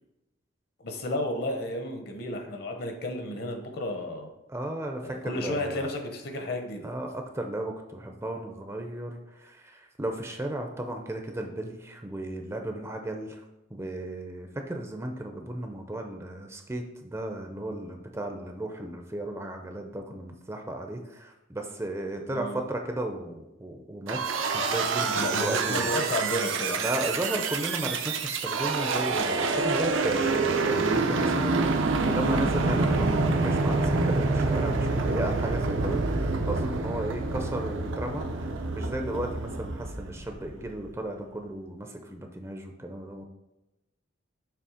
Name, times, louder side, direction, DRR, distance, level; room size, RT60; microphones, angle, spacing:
voice 1, 0.8-4.3 5.0-6.9 22.3-22.6 25.1-26.8, left 1 dB, 55° left, 3 dB, 1.0 m, -32 dB
voice 2, 4.5-5.9 6.8-13.4 13.7-25.9 26.8-43.2, right 1 dB, 15° right, 3 dB, 0.5 m, -35 dB
sound 1, 24.1-40.7, right 3 dB, 75° right, 0.6 m, -27 dB
6.9 x 3.2 x 4.9 m, 0.98 s
head